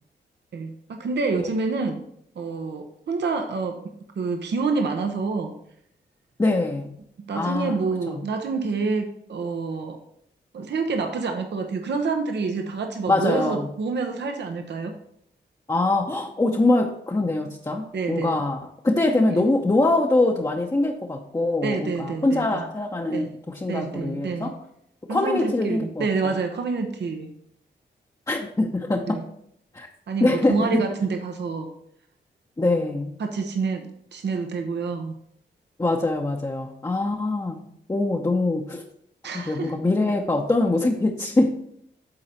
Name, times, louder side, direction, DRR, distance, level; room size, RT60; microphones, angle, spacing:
voice 1, 0.5-2.0 2.4-3.8 4.2-5.5 7.2-10.0 10.5-15.0 17.9-18.4 19.4-19.5 21.6-22.7 23.1-23.3 23.7-24.5 25.1-27.4 29.1-29.2 30.1-31.7 33.2-35.2 39.2-39.8, right 4 dB, 65° right, 5 dB, 0.8 m, -27 dB
voice 2, 6.4-6.9 7.3-7.8 8.1-8.2 13.1-13.7 15.7-18.6 18.8-23.3 23.5-24.6 25.1-26.3 28.3-29.2 29.7-29.9 30.2-30.9 32.6-33.2 35.8-38.8 39.5-41.6, left 2 dB, 20° left, 0 dB, 0.8 m, -23 dB
8.8 x 3.9 x 4.3 m, 0.73 s
cardioid pair, 50°, 19 cm